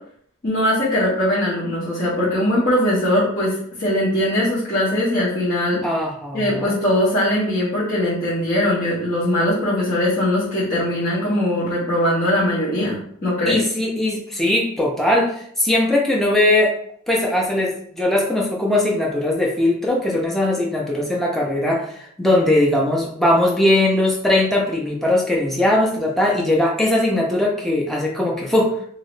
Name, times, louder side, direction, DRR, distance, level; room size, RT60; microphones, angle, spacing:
voice 1, 0.4-3.5 3.8-5.8 6.3-13.6, left 1 dB, 45° left, -10 dB, 1.1 m, -20 dB
voice 2, 5.8-6.8 13.5-16.7 17.1-28.7, left 1 dB, ahead, -3 dB, 0.5 m, -20 dB
3.0 x 2.7 x 3.1 m, 0.64 s
head